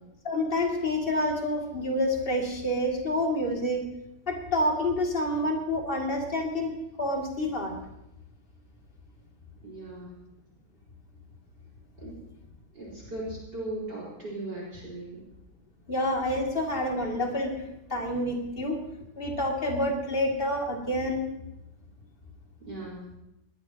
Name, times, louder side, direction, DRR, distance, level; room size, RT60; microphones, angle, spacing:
voice 1, 0.2-3.8 4.3-7.7 15.9-17.6 17.9-18.8 19.2-21.2, left 1 dB, 25° left, 0 dB, 2.8 m, -28 dB
voice 2, 9.6-10.1 12.0-12.2 12.7-15.3 22.6-23.0, right 2 dB, 50° right, -4 dB, 5.4 m, -38 dB
20.5 x 19.5 x 3.0 m, 0.87 s
omnidirectional pair, 2.3 m